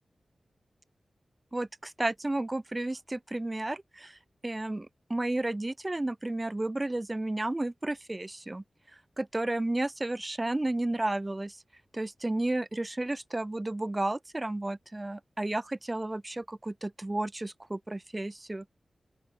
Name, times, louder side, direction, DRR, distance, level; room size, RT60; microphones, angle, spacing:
voice 1, 1.5-8.6 9.2-11.6 11.9-18.7, right 2 dB, 20° right, 5.3 m, -32 dB
open air
wide cardioid pair, 100°, 0 cm